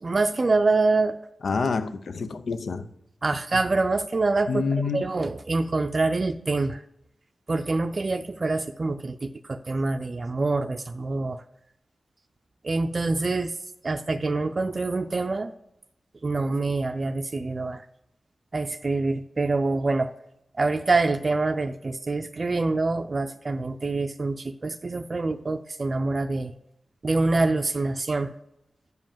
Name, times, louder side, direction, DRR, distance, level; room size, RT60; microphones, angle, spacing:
voice 1, 0.0-1.2 3.2-4.6 4.9-6.8 7.5-11.4 12.6-13.5 13.8-15.5 16.2-17.8 18.5-20.1 20.6-26.5 27.0-28.3, right 3 dB, 45° right, 0.4 m, -25 dB
voice 2, 1.4-2.9 3.5-3.6 4.5-5.0, left 4 dB, 80° left, 0.6 m, -27 dB
7.8 x 5.3 x 7.2 m
wide cardioid pair, 70°, 0 cm